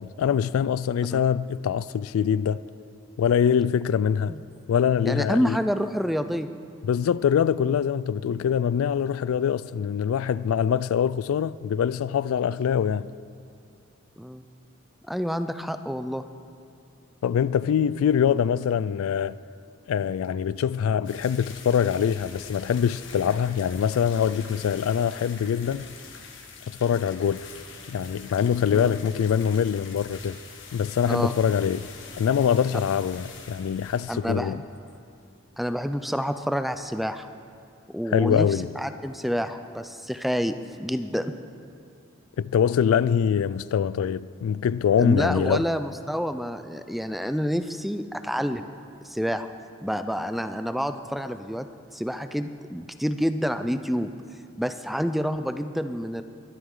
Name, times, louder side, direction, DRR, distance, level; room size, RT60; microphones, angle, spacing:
voice 1, 0.0-2.6 3.2-4.3 4.7-5.6 6.8-13.1 17.2-19.4 19.9-25.9 26.7-27.5 27.9-30.4 30.7-31.9 32.2-34.6 38.1-38.7 42.4-45.7, left 8 dB, 80° left, 0.3 m, -24 dB
voice 2, 5.0-6.5 14.2-14.4 15.1-16.2 28.7-28.9 31.0-31.3 34.1-34.6 35.6-37.3 37.9-41.3 45.0-48.7 49.0-49.5 49.8-51.7 51.9-54.1 54.6-56.2, equal, ahead, 0.3 m, -28 dB
sound 1, 21.0-35.4 35.6-35.7 36.0-36.1 36.5-36.6, left 5 dB, 60° left, 1.6 m, -45 dB
22.0 x 11.0 x 3.8 m
head